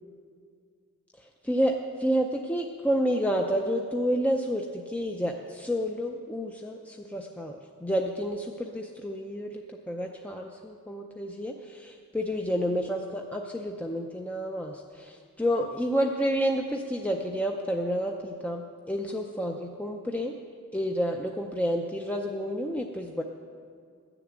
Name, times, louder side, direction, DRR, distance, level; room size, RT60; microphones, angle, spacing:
voice 1, 1.5-20.3 20.7-23.2, equal, 5° left, 2 dB, 0.5 m, -30 dB
12.0 x 6.9 x 8.8 m, 2.1 s
head